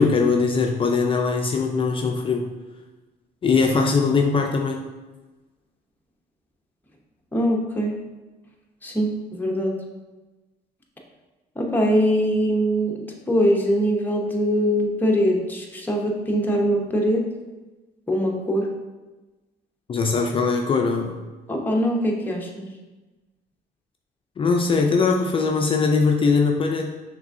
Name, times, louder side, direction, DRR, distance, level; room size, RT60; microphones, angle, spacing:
voice 1, 0.0-2.5 3.4-4.8 19.9-21.2 24.4-27.0, left 4 dB, 30° left, 2 dB, 0.4 m, -21 dB
voice 2, 7.3-7.9 8.8-9.7 11.6-12.9 13.3-17.3 18.1-18.7 21.5-22.7, equal, 10° left, -1 dB, 0.8 m, -22 dB
5.9 x 3.3 x 2.7 m, 1.2 s
cardioid pair, 110°, 17 cm